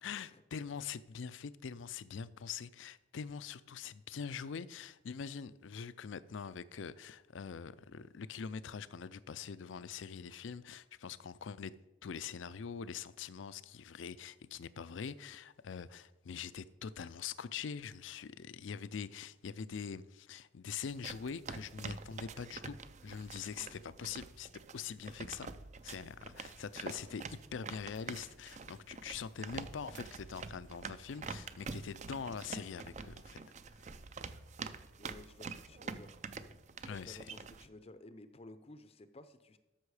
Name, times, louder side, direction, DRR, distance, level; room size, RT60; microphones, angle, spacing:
voice 1, 0.0-11.7 12.0-22.8 23.0-25.5 25.8-33.4 36.8-37.3, left 6 dB, 80° left, 0.4 m, -44 dB
sound 1, 20.9-37.7, right 4 dB, 35° right, 0.5 m, -47 dB
voice 2, 35.0-36.2 36.8-39.6, left 2 dB, 30° left, 0.5 m, -54 dB
13.0 x 6.3 x 4.9 m
head